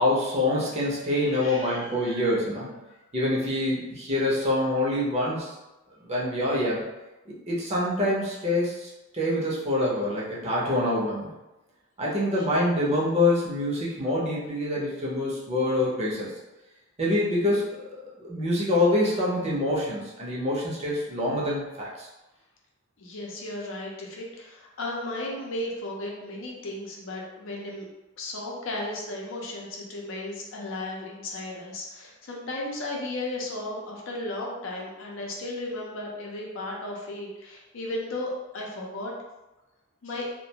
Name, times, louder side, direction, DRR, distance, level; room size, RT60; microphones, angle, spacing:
voice 1, 0.0-2.7 3.1-5.5 6.0-6.8 7.3-11.3 12.0-16.3 17.0-17.8 18.2-22.1, left 1 dB, 30° right, -5 dB, 0.6 m, -26 dB
voice 2, 1.3-2.3 12.3-12.5 23.0-27.9 28.2-39.1 40.0-40.3, left 1 dB, 65° left, -2 dB, 0.6 m, -35 dB
2.4 x 2.2 x 2.8 m, 1.0 s
head